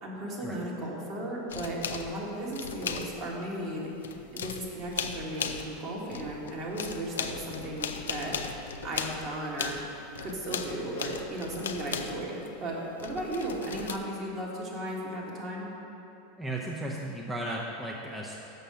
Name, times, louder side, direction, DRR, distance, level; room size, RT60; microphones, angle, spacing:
voice 1, 0.0-3.9 4.3-8.4 8.8-15.7, right 1 dB, 45° right, -4 dB, 1.9 m, -35 dB
sound 1, 1.5-3.5 3.8-5.8 6.1-12.5 13.0-14.0, left 6 dB, 80° left, 0.4 m, -37 dB
voice 2, 16.4-18.4, right 1 dB, 10° right, -3 dB, 0.7 m, -35 dB
6.7 x 5.6 x 6.2 m, 2.9 s
hypercardioid pair, 90°, 0 cm